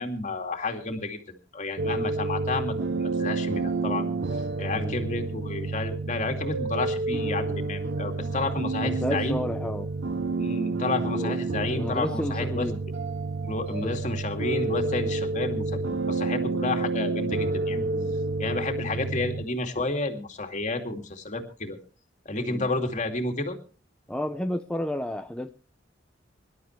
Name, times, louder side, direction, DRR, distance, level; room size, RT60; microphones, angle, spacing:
voice 1, 0.0-9.4 10.4-12.7 13.4-17.8 18.4-21.8 22.3-23.6, left 3 dB, 45° left, 2.5 m, -31 dB
sound 1, 1.8-19.5, right 3 dB, 70° right, 0.7 m, -29 dB
voice 2, 8.8-9.9 11.1-11.4 11.7-12.8 13.7-14.0 17.7-18.2 22.3-22.7 24.1-25.5, left 1 dB, 5° left, 0.6 m, -32 dB
24.0 x 12.0 x 3.2 m
head